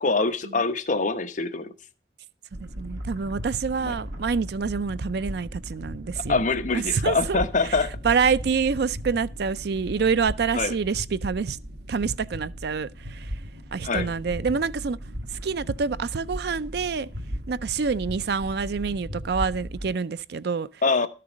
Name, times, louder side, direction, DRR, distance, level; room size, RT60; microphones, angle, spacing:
voice 1, 0.0-1.7 3.8-3.9 6.3-7.9 10.5-10.7 13.8-14.1 20.8-21.1, left 3 dB, 45° left, 1.0 m, -24 dB
sound 1, 2.5-19.9, equal, 85° right, 2.0 m, -37 dB
voice 2, 2.6-6.4 6.7-7.4 8.0-11.6 11.9-13.3 13.7-15.0 15.4-17.1 17.5-20.7, right 5 dB, 65° right, 0.5 m, -27 dB
13.0 x 6.7 x 5.1 m
head